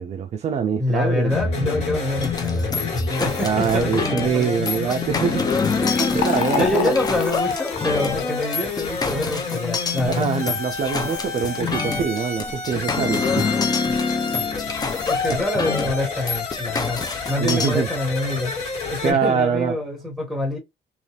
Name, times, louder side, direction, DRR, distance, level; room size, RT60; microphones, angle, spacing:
voice 1, 0.0-1.4 3.4-5.4 6.1-6.9 10.1-13.5 15.3-15.4 17.4-17.9 19.0-19.7, right 6 dB, 40° right, 0.5 m, -24 dB
voice 2, 0.8-4.9 5.8-10.3 15.0-17.0 17.3-18.5 18.9-20.6, left 1 dB, ahead, 1.6 m, -26 dB
sound 1, 1.3-19.1, left 4 dB, 40° left, 2.1 m, -29 dB
sound 2, 2.2-17.7, left 4 dB, 25° left, 0.7 m, -26 dB
Fill (with liquid), 5.4-12.7, left 8 dB, 90° left, 0.6 m, -33 dB
3.0 x 2.5 x 3.2 m
cardioid pair, 110°, 17 cm